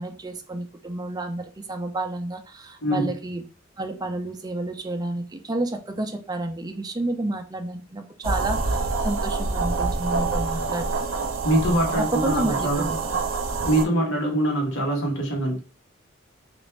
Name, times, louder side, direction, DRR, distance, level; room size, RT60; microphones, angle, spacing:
voice 1, 0.0-3.4 3.8-11.1 12.0-13.2, right 2 dB, 20° right, 5 dB, 0.5 m, -30 dB
sound 1, 8.2-13.8, right 3 dB, 75° right, 0.7 m, -26 dB
voice 2, 11.4-12.9 13.6-15.6, right 1 dB, 70° left, 0 dB, 1.1 m, -23 dB
3.3 x 2.6 x 3.1 m, 0.39 s
head